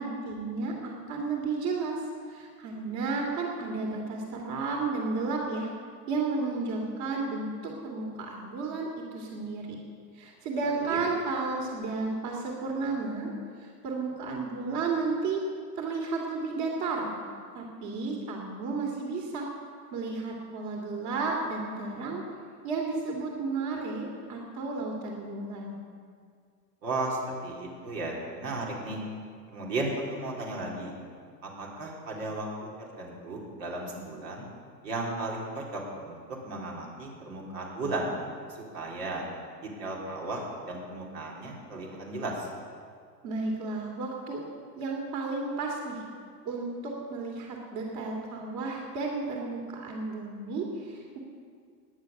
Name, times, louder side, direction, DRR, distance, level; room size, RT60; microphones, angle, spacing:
voice 1, 0.0-2.0 2.3-5.7 6.1-9.8 10.1-13.3 13.6-15.4 15.8-17.1 17.5-19.5 19.9-22.2 22.6-25.8 43.2-44.4 44.7-46.0 46.4-51.2, right 3 dB, 45° right, 0 dB, 3.0 m, -32 dB
voice 2, 10.7-11.0 26.8-29.0 29.5-30.9 31.4-32.7 33.0-34.5 34.8-36.2 36.4-38.1 38.5-39.2 39.6-42.5, right 2 dB, 80° right, -2 dB, 4.1 m, -35 dB
18.0 x 10.0 x 6.8 m, 2.1 s
hypercardioid pair, 120°, 49 cm